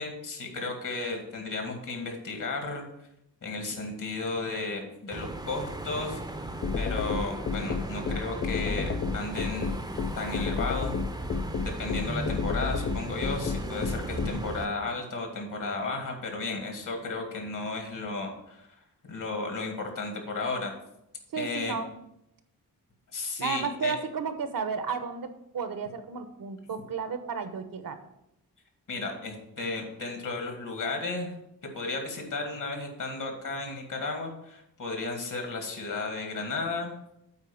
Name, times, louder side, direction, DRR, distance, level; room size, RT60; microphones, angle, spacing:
voice 1, 0.0-2.9 3.4-6.5 6.7-9.7 10.2-11.0 11.6-18.7 19.1-20.7 21.4-21.8 23.1-23.9 28.9-31.3 31.7-36.9, left 3 dB, 55° left, 3 dB, 2.1 m, -34 dB
sound 1, 5.1-14.7, right 1 dB, 10° right, 0.7 m, -36 dB
sound 2, 6.6-14.3, left 5 dB, 35° left, 0.5 m, -30 dB
voice 2, 21.3-21.9 23.4-28.0, right 5 dB, 60° right, 9 dB, 1.0 m, -33 dB
8.2 x 4.7 x 7.0 m, 0.81 s
wide cardioid pair, 145°, 37 cm